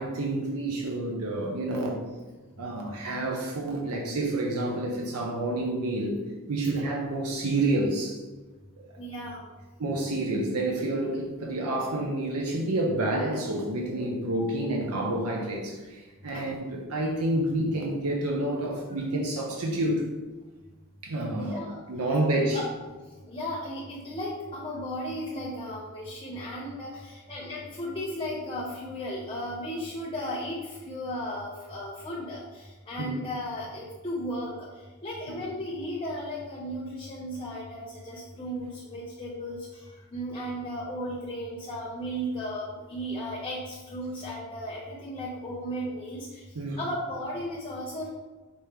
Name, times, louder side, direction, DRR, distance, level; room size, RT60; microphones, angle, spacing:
voice 1, 0.0-2.0 2.6-6.2 6.5-8.2 8.8-9.0 9.8-20.1 21.0-21.6 21.9-22.6 33.0-33.2 35.3-35.4 46.5-46.8, right 1 dB, 85° right, 0 dB, 0.7 m, -29 dB
voice 2, 9.0-9.5 16.3-16.5 18.9-19.0 21.4-21.8 22.5-22.7 23.3-34.7 35.0-46.4 46.8-48.1, equal, 25° left, -5 dB, 0.6 m, -35 dB
5.3 x 2.9 x 3.3 m, 1.3 s
head